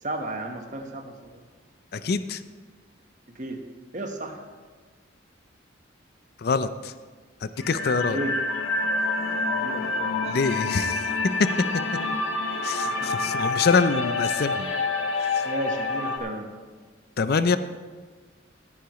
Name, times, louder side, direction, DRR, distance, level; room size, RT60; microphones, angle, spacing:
voice 1, 0.0-1.4 3.3-3.7 3.9-4.4 8.0-8.4 9.5-10.3 12.8-13.1 15.4-16.5, right 1 dB, 40° right, 4 dB, 1.2 m, -33 dB
voice 2, 1.9-2.4 6.4-6.9 7.4-8.2 10.2-11.5 12.6-14.7 15.2-15.5 17.2-17.6, left 4 dB, 55° left, 13 dB, 0.5 m, -25 dB
sound 1, 7.6-16.2, left 3 dB, 80° left, 1.4 m, -27 dB
17.0 x 9.5 x 3.1 m, 1.5 s
head